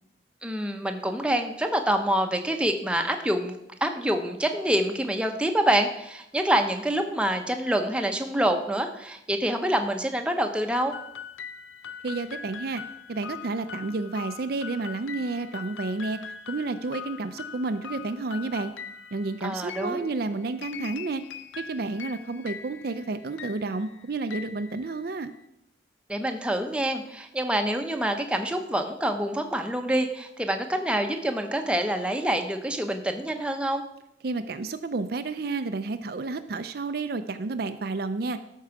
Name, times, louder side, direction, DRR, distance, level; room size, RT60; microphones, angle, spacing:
voice 1, 0.4-10.9 19.4-20.1 26.1-33.8, right 1 dB, 5° right, 5 dB, 0.8 m, -26 dB
sound 1, 10.9-25.4, left 7 dB, 85° left, 0.6 m, -42 dB
voice 2, 12.0-12.8 13.1-16.2 16.5-18.7 19.1-21.2 21.6-25.3 34.2-38.4, right 3 dB, 55° right, 9 dB, 0.5 m, -31 dB
13.0 x 4.6 x 5.8 m, 0.81 s
head